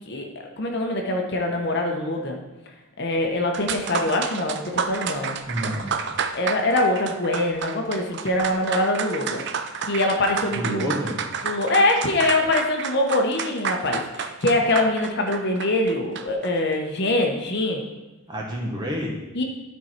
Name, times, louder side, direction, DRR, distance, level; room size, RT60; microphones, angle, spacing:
voice 1, 0.6-2.4 3.0-5.4 6.3-9.4 9.9-10.9 11.4-17.8 19.3-19.4, left 2 dB, 50° left, 2 dB, 0.9 m, -23 dB
sound 1, 3.3-3.4 3.5-16.5, right 6 dB, 50° right, 0.5 m, -30 dB
voice 2, 5.5-6.1 10.5-11.2 18.3-19.2, equal, 20° right, -2 dB, 1.2 m, -29 dB
12.5 x 4.6 x 4.4 m, 1.1 s
head